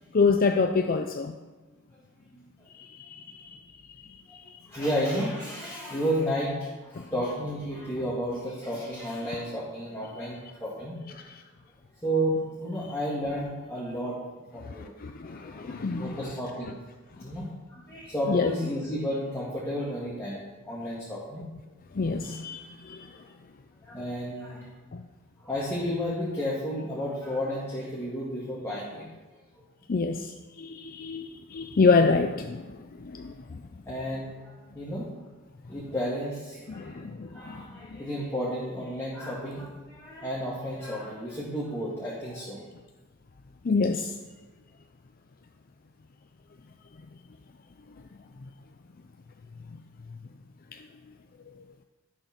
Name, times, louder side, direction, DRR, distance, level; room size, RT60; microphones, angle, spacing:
voice 1, 0.1-1.3 2.8-3.5 4.3-4.4 7.0-7.1 15.0-16.2 18.3-18.5 21.9-23.1 24.9-25.0 29.9-33.6 36.7-37.6 37.9-38.0 43.6-44.1 50.7-50.8, left 4 dB, 45° left, 6 dB, 0.5 m, -27 dB
voice 2, 2.3-2.7 4.7-11.3 12.0-14.2 14.5-14.9 15.3-16.8 17.2-21.4 23.8-24.7 25.4-29.1 33.9-35.1 35.7-42.7, equal, 15° left, -7 dB, 2.0 m, -32 dB
11.5 x 6.6 x 5.9 m, 1.2 s
head